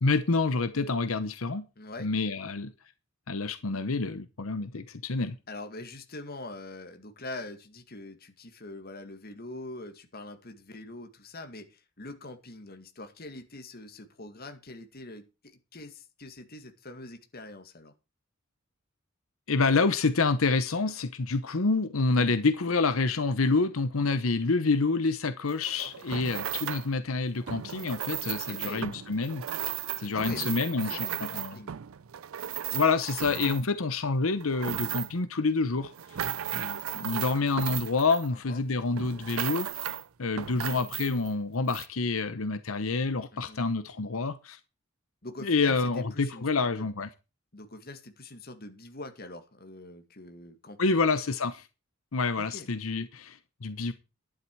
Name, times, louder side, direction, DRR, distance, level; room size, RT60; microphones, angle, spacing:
voice 1, 0.0-1.7 2.0-2.7 3.3-5.4 19.5-29.4 30.0-31.6 32.7-35.9 36.5-44.6 45.4-47.1 50.8-51.7 52.1-53.9, left 3 dB, 90° left, 0.9 m, -28 dB
voice 2, 1.8-2.1 5.5-15.2 15.7-17.9 28.2-28.9 30.1-31.7 38.3-38.6 43.3-43.6 45.2-46.9 47.5-51.0 52.4-52.7, left 2 dB, 50° left, 2.0 m, -44 dB
sound 1, 25.5-26.9 27.4-33.8 34.3-35.3 35.8-38.6 39.0-40.1 40.4-41.3 41.7-41.9, right 11 dB, 90° right, 0.5 m, -36 dB
11.5 x 9.9 x 4.7 m
head